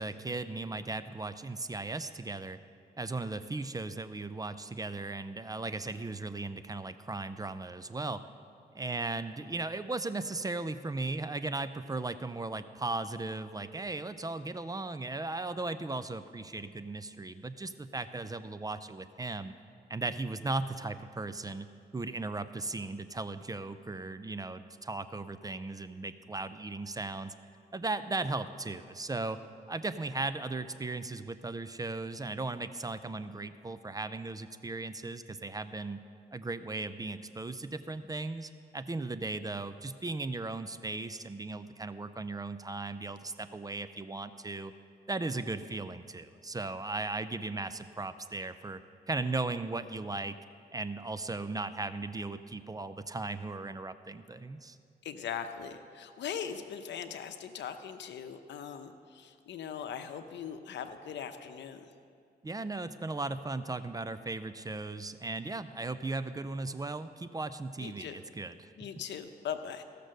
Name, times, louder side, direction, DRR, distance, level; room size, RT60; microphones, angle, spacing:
voice 1, 0.0-2.6 3.0-8.2 8.7-19.5 19.9-21.7 21.9-27.3 27.7-29.4 29.7-36.0 36.3-44.7 45.1-48.8 49.1-50.4 50.7-54.8 62.4-68.7, right 3 dB, 20° right, 12 dB, 0.5 m, -37 dB
voice 2, 55.0-61.9 67.8-68.2 68.8-69.8, left 8 dB, 80° left, 9 dB, 0.8 m, -40 dB
15.5 x 6.7 x 6.4 m, 2.3 s
cardioid pair, 90°, 18 cm